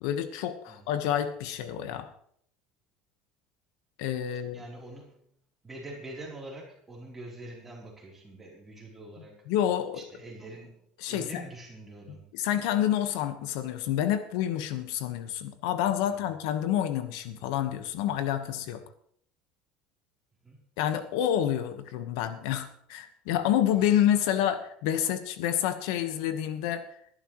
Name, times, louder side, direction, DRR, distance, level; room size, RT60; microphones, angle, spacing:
voice 1, 0.0-2.1 4.0-4.6 9.5-10.0 11.0-11.3 12.3-18.8 20.8-26.8, left 11 dB, 75° left, 9 dB, 1.2 m, -28 dB
voice 2, 4.3-5.3 5.6-9.4 9.9-12.3 16.0-16.3 20.4-20.6, right 2 dB, 10° right, -3 dB, 3.5 m, -45 dB
20.5 x 11.0 x 3.1 m, 0.65 s
cardioid pair, 180°, 3 cm